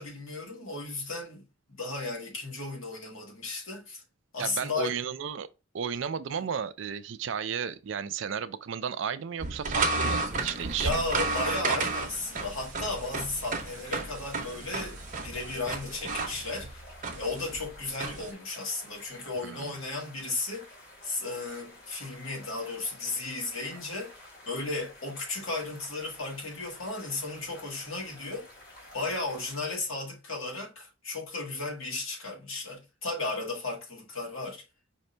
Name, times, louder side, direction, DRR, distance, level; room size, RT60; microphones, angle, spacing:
voice 1, 0.0-1.4 1.7-4.0 4.3-4.9 10.8-16.9 17.2-20.7 21.0-28.5 28.9-34.6, left 3 dB, 75° left, 1.9 m, -35 dB
voice 2, 4.4-5.5 5.7-10.9 19.4-19.7, right 7 dB, 65° right, 0.4 m, -33 dB
sound 1, 9.4-18.3, right 3 dB, 40° right, 0.8 m, -32 dB
sound 2, 10.3-29.6, left 1 dB, 50° left, 2.4 m, -51 dB
5.1 x 2.7 x 3.2 m
head